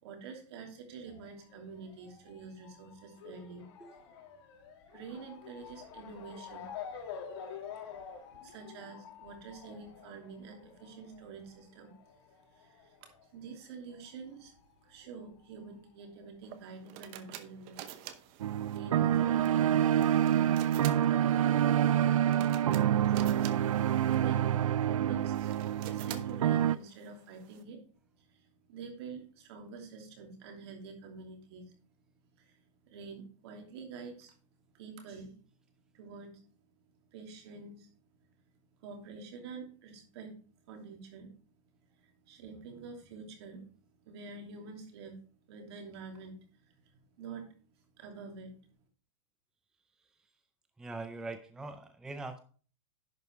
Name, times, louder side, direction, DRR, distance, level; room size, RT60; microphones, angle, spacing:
voice 1, 0.0-3.7 4.9-6.7 8.3-11.9 12.6-13.0 13.3-14.5 14.8-17.9 18.7-20.6 21.1-23.4 24.1-24.5 24.8-25.4 25.8-27.8 28.3-31.6 32.4-32.5 32.9-34.3 34.7-35.3 35.9-36.3 37.1-37.9 38.8-40.3 40.7-41.3 42.0-43.6 44.0-45.1 45.5-46.7 47.2-47.5 48.0-48.5, right 5 dB, 55° right, 3 dB, 2.8 m, -47 dB
Motor vehicle (road) / Siren, 1.1-14.1 14.3-15.5 16.2-16.3 16.5-16.6, left 7 dB, 50° left, 2.0 m, -48 dB
sound 1, 16.4-27.6, right 11 dB, 35° right, 0.9 m, -49 dB
sound 2, 18.4-26.8, right 10 dB, 85° right, 0.5 m, -27 dB
voice 2, 50.8-52.4, right 3 dB, 5° right, 8 dB, 0.4 m, -42 dB
11.0 x 5.3 x 4.5 m, 0.42 s
hypercardioid pair, 150°, 17 cm